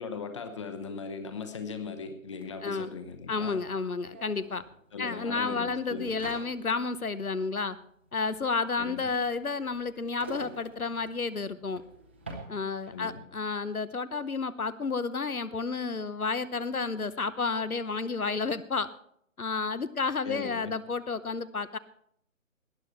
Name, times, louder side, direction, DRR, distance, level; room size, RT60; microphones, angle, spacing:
voice 1, 0.0-3.6 4.9-6.2 8.8-9.1 12.9-13.3 20.2-20.8, left 5 dB, 20° left, 9 dB, 0.9 m, -39 dB
sound 1, 2.4-2.5 2.7-13.2, right 2 dB, 10° right, 0.6 m, -49 dB
voice 2, 3.3-4.6 5.0-7.8 8.1-11.8 12.5-18.9 19.4-21.8, left 4 dB, 85° left, 16 dB, 0.9 m, -31 dB
19.0 x 10.0 x 4.2 m, 0.69 s
figure-of-eight pair, 145°, 42 cm